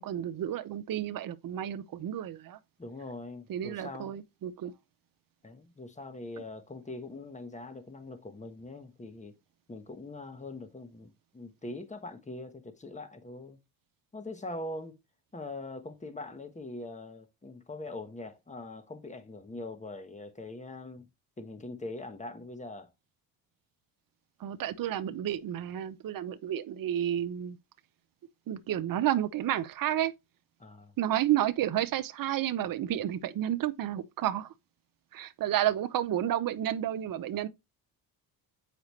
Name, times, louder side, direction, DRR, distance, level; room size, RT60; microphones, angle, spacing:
voice 1, 0.0-2.6 3.5-4.7 24.4-27.6 28.5-30.1 31.0-34.5 35.1-37.5, right 11 dB, 45° right, 0.8 m, -31 dB
voice 2, 2.8-4.2 5.4-9.4 9.7-13.6 14.1-15.0 15.3-21.1 21.4-22.9 30.6-30.9, left 2 dB, 15° left, 1.3 m, -42 dB
8.0 x 5.0 x 3.1 m
supercardioid pair, 75°, 46 cm